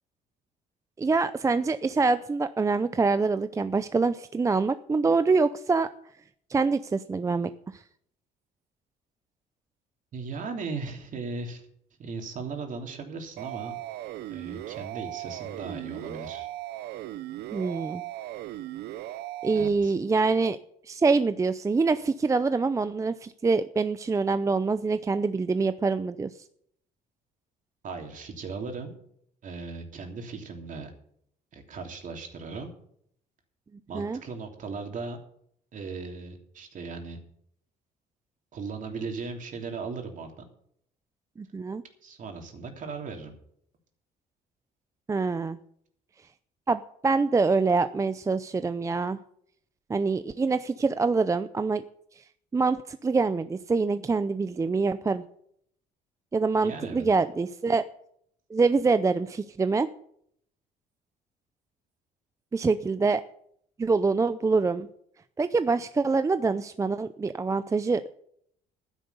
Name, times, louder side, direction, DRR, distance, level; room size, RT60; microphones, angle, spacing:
voice 1, 1.0-5.9 6.5-7.8 17.5-18.0 19.4-20.6 20.9-26.3 33.9-34.2 41.4-41.8 45.1-45.6 46.7-49.2 49.9-51.8 52.5-55.2 56.3-57.8 58.5-59.9 62.5-63.2 63.8-64.9 65.4-68.0, right 4 dB, 20° right, 12 dB, 0.5 m, -25 dB
voice 2, 10.1-11.7 12.0-13.8 14.3-16.5 19.5-19.9 27.8-28.9 29.4-30.9 31.5-32.7 33.9-35.2 35.7-37.2 38.5-40.3 42.0-43.3 56.6-57.1, right 4 dB, 50° right, 4 dB, 3.1 m, -37 dB
sound 1, 13.4-19.7, right 14 dB, 75° right, 0.6 m, -37 dB
12.0 x 10.5 x 6.9 m, 0.68 s
cardioid pair, 110°, 17 cm